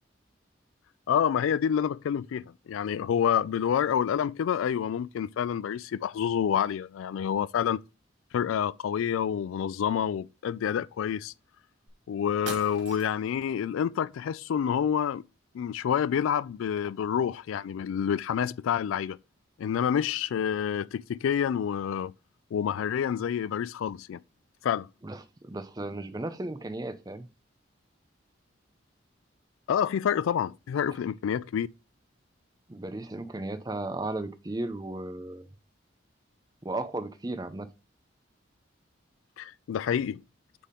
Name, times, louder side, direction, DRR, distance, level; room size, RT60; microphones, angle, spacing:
voice 1, 1.1-7.8 8.3-11.3 12.1-15.2 15.5-19.2 19.6-22.1 22.5-24.2 24.6-24.9 29.7-31.7 39.4-40.2, left 8 dB, 90° left, 0.3 m, -28 dB
sound 1, 11.9-12.0 12.5-13.4, right 3 dB, 75° right, 2.0 m, -41 dB
voice 2, 25.0-27.3 32.7-35.5 36.6-37.7, right 2 dB, 20° right, 0.5 m, -35 dB
8.4 x 3.5 x 3.7 m
head